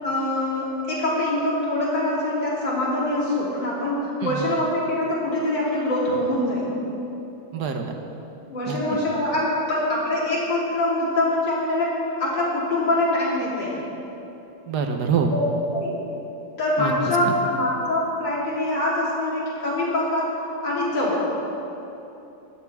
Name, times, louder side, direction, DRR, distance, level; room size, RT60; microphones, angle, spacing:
voice 1, 0.0-6.7 8.5-13.8 15.3-15.4 15.7-16.0 16.6-21.3, left 1 dB, 90° left, -7 dB, 4.3 m, -24 dB
voice 2, 7.5-8.0 8.7-8.8 14.7-15.3 16.8-16.9 17.2-17.3, right 6 dB, 70° right, 4 dB, 1.6 m, -25 dB
20.0 x 13.0 x 3.6 m, 3.0 s
omnidirectional pair, 1.9 m